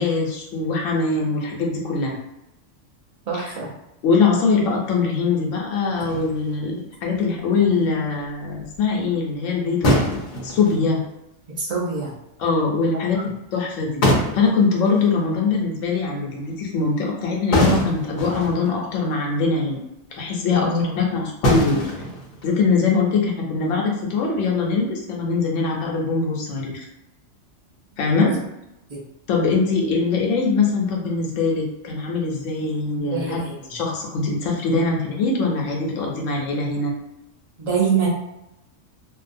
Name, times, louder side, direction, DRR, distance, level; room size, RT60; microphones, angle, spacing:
voice 1, 0.0-2.2 3.4-3.5 4.0-9.9 10.4-11.0 12.4-14.0 14.3-19.8 20.1-21.8 22.4-26.8 28.0-28.3 29.3-33.4 33.7-36.9, left 4 dB, 85° left, -1 dB, 1.0 m, -22 dB
voice 2, 3.3-3.7 7.6-8.0 11.6-12.1 12.9-13.2 20.5-21.0 28.2-28.4 28.9-29.0 33.1-33.5 37.6-38.1, right 4 dB, 40° right, -4 dB, 0.6 m, -25 dB
sound 1, 6.0-6.7 8.6-8.8 9.8-10.9 13.7-13.8 14.0-15.1 17.5-18.7 19.3-19.4 19.7-19.8 21.4-22.7, left 1 dB, 50° left, 0.7 m, -23 dB
2.6 x 2.2 x 2.5 m, 0.88 s
omnidirectional pair, 1.3 m